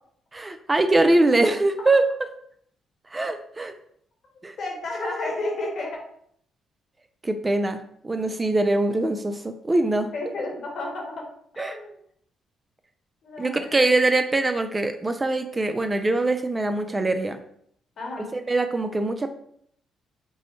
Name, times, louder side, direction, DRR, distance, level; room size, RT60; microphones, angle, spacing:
voice 1, 0.3-2.1 3.1-3.7 4.4-4.6 7.2-10.1 11.6-11.8 13.4-17.4 18.2-19.3, right 2 dB, 20° right, 7 dB, 0.4 m, -23 dB
voice 2, 4.6-6.0 9.7-9.8 10.1-11.3 11.7-11.9 13.2-13.8 18.0-18.3, left 2 dB, 60° left, 0 dB, 1.2 m, -31 dB
5.2 x 2.1 x 3.1 m, 0.66 s
cardioid pair, 90°, 0 cm